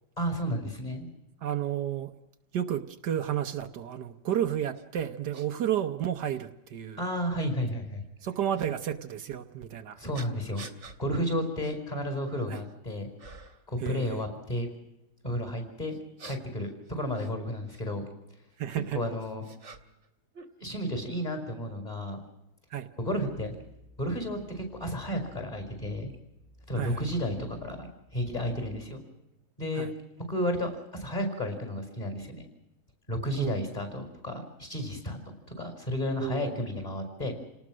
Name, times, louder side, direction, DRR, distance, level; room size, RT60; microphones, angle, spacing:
voice 1, 0.2-1.1 7.0-8.0 10.0-10.6 11.0-13.1 13.7-14.7 15.2-16.0 16.2-18.0 18.9-19.4 20.6-22.2 23.0-23.5 24.0-26.1 26.7-29.0 29.6-29.9 30.3-32.4 33.1-37.3, equal, 20° left, 5 dB, 5.3 m, -32 dB
voice 2, 1.4-2.1 2.5-7.0 8.2-10.0 12.5-12.6 13.8-14.2 18.6-19.0 22.7-22.9 26.8-27.0 29.8-29.9 33.4-33.6 36.2-36.6, right 10 dB, 75° right, 8 dB, 1.6 m, -32 dB
sound 1, 4.7-4.8 5.3-5.5 6.4-6.5 8.5-8.7 10.1-11.0 11.6-11.8 12.2-12.7 13.2-13.7 15.9-17.8 18.8-20.1 20.3-21.2, right 3 dB, 45° right, 1.9 m, -49 dB
29.0 x 19.0 x 6.3 m, 0.90 s
omnidirectional pair, 1.9 m